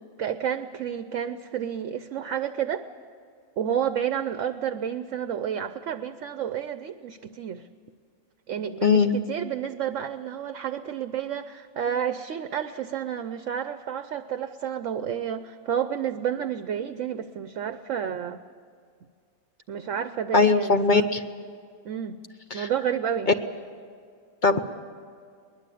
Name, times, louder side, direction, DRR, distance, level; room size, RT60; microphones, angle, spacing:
voice 1, 0.2-2.9 3.6-7.7 8.5-18.4 19.7-21.1 21.8-22.2 22.5-23.3, right 9 dB, 65° right, 11 dB, 1.0 m, -30 dB
voice 2, 8.8-9.1 20.3-21.2 22.5-22.7 24.4-24.6, left 4 dB, 40° left, 8 dB, 0.8 m, -20 dB
21.5 x 20.5 x 8.4 m, 2.2 s
omnidirectional pair, 1.5 m